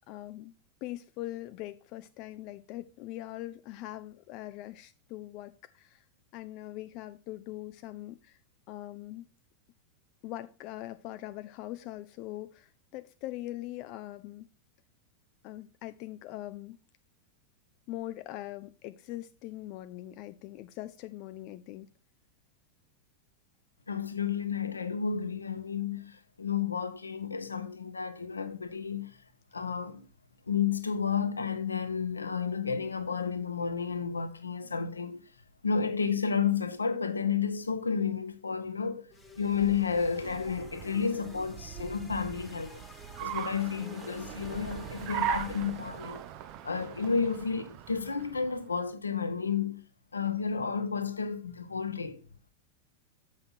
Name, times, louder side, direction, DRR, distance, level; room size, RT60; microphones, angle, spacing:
voice 1, 0.1-0.5 0.8-6.1 6.3-8.4 8.7-9.3 10.2-14.5 15.4-16.8 17.9-21.9, left 15 dB, 40° left, 0.3 m, -42 dB
voice 2, 23.9-29.2 29.5-30.0 30.5-35.2 35.6-39.1 39.4-42.8 43.2-46.3 46.6-49.8 50.1-52.2, left 6 dB, 75° left, 0.7 m, -31 dB
sound 1, 39.1-46.2, left 2 dB, 10° left, 1.4 m, -52 dB
Car, 39.2-48.8, right 9 dB, 40° right, 0.6 m, -40 dB
7.6 x 5.7 x 4.5 m
figure-of-eight pair, 90°, 0 cm